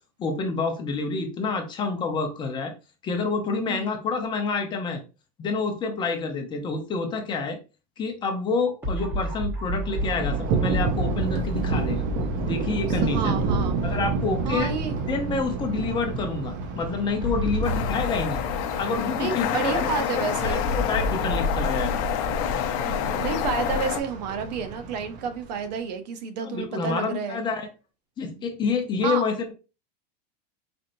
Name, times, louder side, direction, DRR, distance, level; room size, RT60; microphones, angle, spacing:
voice 1, 0.2-2.7 3.0-5.0 5.4-7.6 8.0-12.0 12.4-13.3 13.8-14.7 15.1-18.4 18.8-22.0 26.4-27.7 28.2-29.5, left 4 dB, 20° left, 0.7 m, -28 dB
voice 2, 3.7-4.0 12.9-13.8 14.4-15.0 19.2-20.6 22.8-27.4 28.4-28.5 29.0-29.2, right 6 dB, 85° right, 0.8 m, -30 dB
sound 1, 8.8-15.2 15.5-15.6 17.2-19.7 20.6-23.4, equal, 10° right, 1.1 m, -32 dB
Thunder, 9.8-25.7, right 4 dB, 35° right, 0.5 m, -30 dB
sound 2, 17.6-24.0, left 8 dB, 60° left, 0.6 m, -27 dB
4.3 x 2.7 x 2.6 m
supercardioid pair, 155°, 21 cm